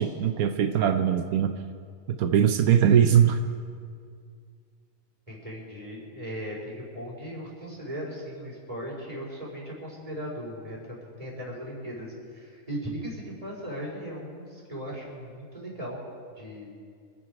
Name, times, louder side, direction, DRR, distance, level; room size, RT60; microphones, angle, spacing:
voice 1, 0.0-1.5 2.1-3.4, right 9 dB, 85° right, 7 dB, 1.2 m, -21 dB
voice 2, 5.3-16.0 16.4-16.7, equal, 25° right, -4 dB, 4.7 m, -38 dB
26.0 x 10.0 x 4.9 m, 2.2 s
omnidirectional pair, 1.5 m